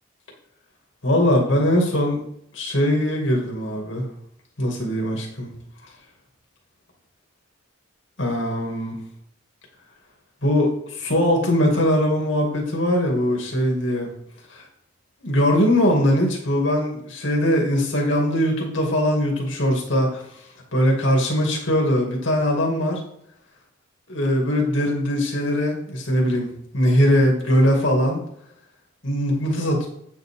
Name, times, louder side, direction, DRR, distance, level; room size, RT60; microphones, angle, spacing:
voice 1, 1.0-2.2 2.5-4.1 4.6-5.5 8.2-9.0 10.4-14.1 14.5-14.7 15.2-20.2 20.7-23.0 24.1-26.5 26.7-28.2 29.0-29.9, equal, 75° left, 0 dB, 2.5 m, -21 dB
8.9 x 7.6 x 3.8 m, 0.73 s
head